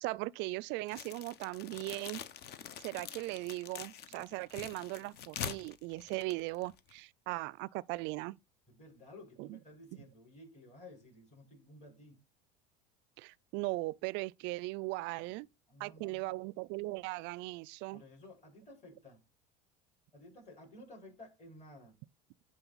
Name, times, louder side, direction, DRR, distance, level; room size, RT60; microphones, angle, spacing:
voice 1, 0.0-2.2 2.8-8.4 9.4-9.6 13.2-15.5 15.8-18.0, right 22 dB, 60° right, 0.4 m, -38 dB
sound 1, 0.9-7.0, left 9 dB, 50° left, 0.8 m, -45 dB
voice 2, 8.7-12.2 15.3-15.4 15.7-16.4 17.9-19.2 20.1-22.0, left 1 dB, 35° left, 4.9 m, -54 dB
10.0 x 3.8 x 4.0 m
hypercardioid pair, 85°, 21 cm